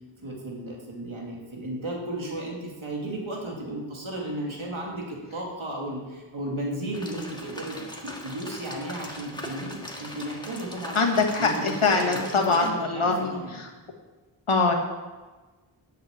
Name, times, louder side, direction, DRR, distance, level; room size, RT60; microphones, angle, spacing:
voice 1, 0.2-11.0 11.4-13.5, right 1 dB, 70° right, -2 dB, 2.5 m, -34 dB
sound 1, 6.9-12.7, left 1 dB, 10° left, 1.7 m, -40 dB
voice 2, 10.9-13.7 14.5-14.7, left 3 dB, 75° left, 1 dB, 1.7 m, -23 dB
8.5 x 6.8 x 7.1 m, 1.3 s
wide cardioid pair, 45°, 49 cm